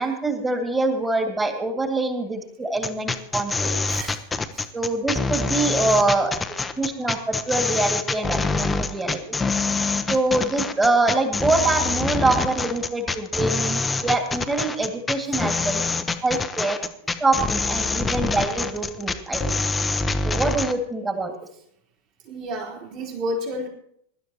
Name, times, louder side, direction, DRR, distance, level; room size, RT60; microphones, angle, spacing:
voice 1, 0.0-3.8 4.7-6.3 6.8-9.4 10.1-15.8 16.2-16.8 17.2-19.5 20.2-21.3, right 2 dB, 15° right, 6 dB, 2.1 m, -24 dB
sound 1, 2.8-20.7, left 3 dB, 10° left, 0.7 m, -25 dB
voice 2, 3.9-4.2 4.5-4.7 22.3-23.7, equal, 45° right, -2 dB, 3.5 m, -30 dB
23.0 x 12.0 x 2.9 m, 0.70 s
figure-of-eight pair, 90°, 0 cm